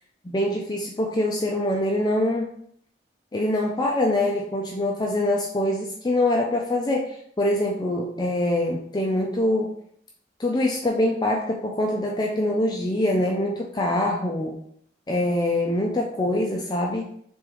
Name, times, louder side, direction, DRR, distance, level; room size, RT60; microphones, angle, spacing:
voice 1, 0.3-2.5 3.3-9.7 10.4-14.6 15.1-17.1, left 1 dB, 25° left, -1 dB, 0.4 m, -24 dB
3.5 x 3.5 x 3.0 m, 0.65 s
head